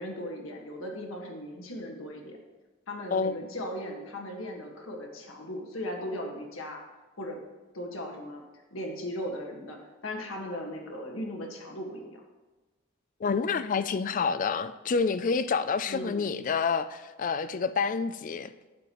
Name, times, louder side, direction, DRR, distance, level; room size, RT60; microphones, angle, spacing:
voice 1, 0.0-2.4 2.9-6.8 7.2-7.4 7.7-8.4 8.7-12.2 15.9-16.3, left 1 dB, 80° left, 1.6 m, -37 dB
voice 2, 13.2-18.5, left 5 dB, 40° left, 0.4 m, -28 dB
11.5 x 8.7 x 3.1 m
head